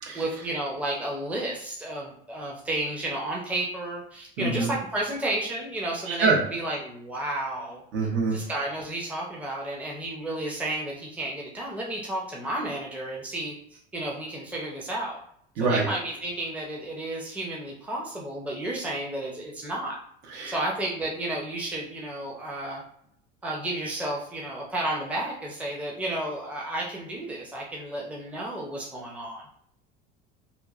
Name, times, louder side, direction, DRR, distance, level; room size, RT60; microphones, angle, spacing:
voice 1, 0.1-7.8 8.3-15.2 15.6-20.0 20.4-22.8 23.4-29.4, right 1 dB, 5° right, -3 dB, 0.6 m, -32 dB
voice 2, 4.4-4.7 6.1-6.4 7.9-8.4 15.6-15.8 20.3-20.6, right 4 dB, 65° right, 0 dB, 0.9 m, -25 dB
2.9 x 2.2 x 2.4 m, 0.69 s
supercardioid pair, 115°, 21 cm